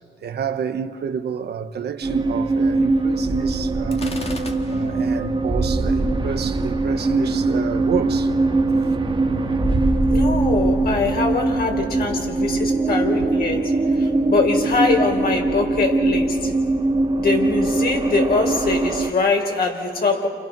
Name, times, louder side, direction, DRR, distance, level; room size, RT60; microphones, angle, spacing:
voice 1, 0.2-4.4 4.7-8.3 8.8-8.9 13.2-13.3, right 7 dB, 55° right, 1.2 m, -29 dB
sound 1, 2.0-19.1, right 2 dB, 25° right, 2.7 m, -21 dB
Gunshot gunfire, 3.9-5.2, left 3 dB, 30° left, 2.0 m, -34 dB
voice 2, 10.1-16.5 17.2-20.3, left 3 dB, 50° left, 4.8 m, -23 dB
29.5 x 29.0 x 6.2 m
cardioid pair, 90°, 20 cm